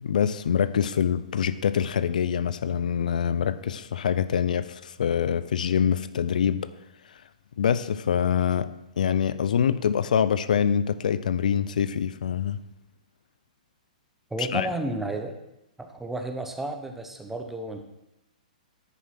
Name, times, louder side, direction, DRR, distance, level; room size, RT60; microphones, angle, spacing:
voice 1, 0.0-6.7 7.1-7.2 7.6-8.7 9.0-12.6 14.4-14.7, left 8 dB, 75° left, 15 dB, 0.4 m, -25 dB
voice 2, 14.3-15.4 15.8-17.8, right 2 dB, 5° right, 5 dB, 1.0 m, -32 dB
10.0 x 4.7 x 5.9 m, 0.88 s
hypercardioid pair, 130°, 4 cm